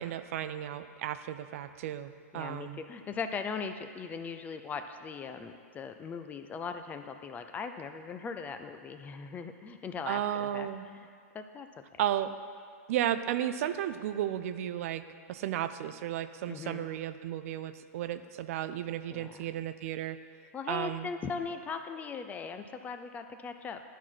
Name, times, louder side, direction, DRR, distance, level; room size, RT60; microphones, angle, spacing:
voice 1, 0.0-2.8 10.1-10.8 12.0-12.3 12.9-15.0 15.3-20.2 20.7-21.1, right 11 dB, 60° right, 12 dB, 0.4 m, -34 dB
voice 2, 2.3-11.1 11.3-11.7 11.9-12.0 16.5-16.9 19.1-19.5 20.5-23.8, left 5 dB, 20° left, 8 dB, 0.4 m, -39 dB
11.0 x 4.5 x 5.9 m, 2.1 s
hypercardioid pair, 130°, 9 cm